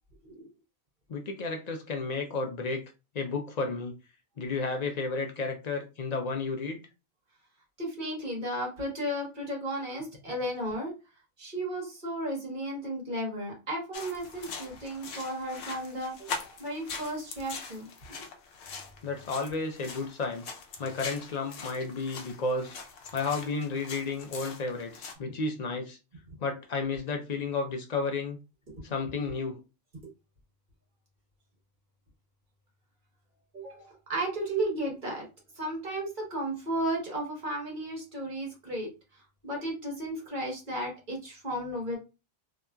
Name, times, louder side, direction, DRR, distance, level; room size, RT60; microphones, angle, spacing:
voice 1, 1.1-2.8 3.1-3.9 4.4-6.8 19.0-20.4 20.8-22.7 23.1-26.0 26.4-28.4 28.8-29.6, left 3 dB, 50° left, 0.5 m, -32 dB
voice 2, 7.8-10.9 11.4-18.3 33.5-35.2 35.5-42.0, right 1 dB, 50° right, 1.3 m, -34 dB
sound 1, 13.9-25.1, left 5 dB, 80° left, 0.9 m, -42 dB
2.8 x 2.4 x 2.2 m
omnidirectional pair, 1.1 m